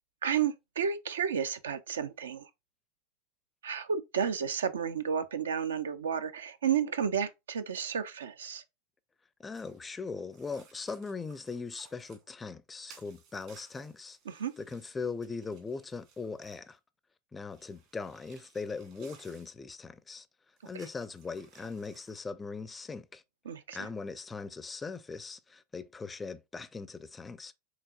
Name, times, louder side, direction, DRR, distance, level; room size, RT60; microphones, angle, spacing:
voice 1, 0.2-2.5 3.6-8.6 14.3-14.5 20.7-20.9 23.4-23.9, right 7 dB, 80° right, 0.4 m, -32 dB
voice 2, 9.4-14.2 14.6-16.8 17.3-20.3 20.6-23.2 23.7-27.5, left 4 dB, 15° left, 0.4 m, -40 dB
sound 1, 9.5-9.8 10.3-12.2 12.9-16.8 17.5-19.6 20.6-22.2, right 6 dB, 55° right, 1.7 m, -60 dB
4.7 x 3.0 x 2.3 m
hypercardioid pair, 90°, 0 cm